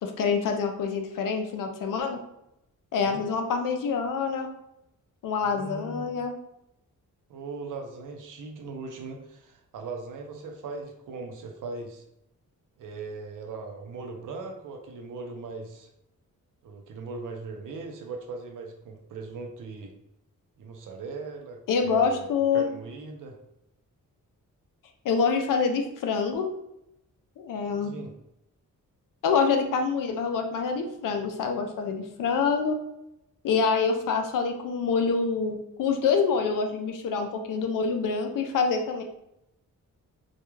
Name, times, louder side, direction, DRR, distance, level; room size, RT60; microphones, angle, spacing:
voice 1, 0.0-2.2 2.9-4.5 5.2-6.3 21.7-22.6 25.0-26.5 27.4-27.9 29.2-32.8 33.4-39.0, left 5 dB, 75° left, 5 dB, 0.5 m, -26 dB
voice 2, 5.4-6.2 7.3-12.0 12.8-15.9 16.6-19.9 20.6-22.3 22.5-23.4 27.8-28.1, right 3 dB, 75° right, 2 dB, 0.5 m, -39 dB
2.3 x 2.2 x 3.0 m, 0.83 s
wide cardioid pair, 150°, 32 cm